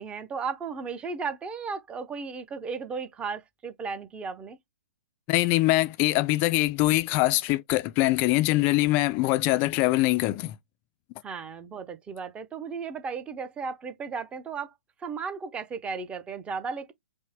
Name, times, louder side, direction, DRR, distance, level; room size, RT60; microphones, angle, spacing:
voice 1, 0.0-4.6 9.2-9.6 11.2-14.7 15.0-16.9, right 5 dB, 15° right, 0.7 m, -35 dB
voice 2, 5.3-10.6, left 19 dB, 30° left, 0.4 m, -23 dB
5.3 x 2.0 x 3.5 m
figure-of-eight pair, 125°, 7 cm